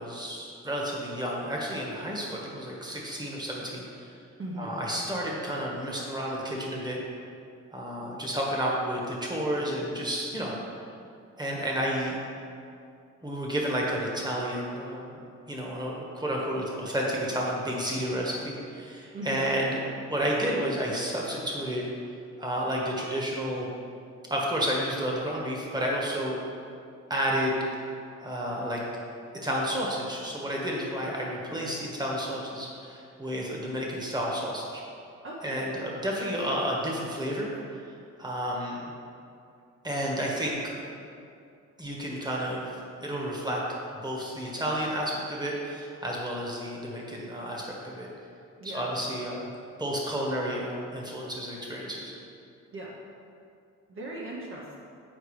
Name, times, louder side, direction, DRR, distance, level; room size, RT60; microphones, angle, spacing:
voice 1, 0.0-4.1 4.6-7.0 7.7-10.5 11.4-12.1 13.2-15.2 15.5-19.8 20.1-21.8 22.4-23.7 24.3-26.4 27.1-27.5 28.2-28.8 29.4-34.8 35.4-37.5 38.2-38.9 39.8-40.6 41.8-42.7 43.0-43.6 43.9-48.1 48.6-49.5 49.8-52.1, equal, 15° right, -3 dB, 1.4 m, -31 dB
voice 2, 4.4-4.8 19.1-19.5 35.2-35.6 48.6-48.8 52.7-53.0 53.9-54.8, right 1 dB, 45° right, -4 dB, 0.9 m, -38 dB
8.1 x 4.7 x 3.2 m, 2.5 s
cardioid pair, 90°, 30 cm